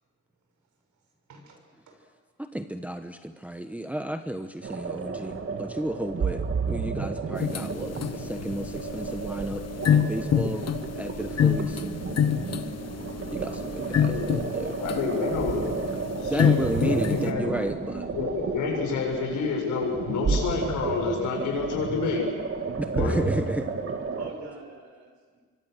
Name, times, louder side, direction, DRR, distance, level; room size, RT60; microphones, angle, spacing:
voice 1, 1.3-2.0 24.2-25.4, right 3 dB, 70° right, 3 dB, 6.2 m, -46 dB
voice 2, 2.4-9.6 9.9-10.7 11.0-11.8 13.3-14.8 16.2-18.1 22.8-23.7, right 1 dB, 5° right, 7 dB, 1.0 m, -32 dB
sound 1, 4.6-24.3, right 5 dB, 45° right, 2.8 m, -32 dB
sound 2, 7.4-17.3, left 8 dB, 55° left, 1.4 m, -28 dB
voice 3, 14.8-15.6 16.2-17.5 18.1-22.3 22.9-23.2, left 4 dB, 85° left, 0 dB, 7.4 m, -28 dB
27.0 x 23.5 x 6.5 m, 1.5 s
cardioid pair, 90°, 30 cm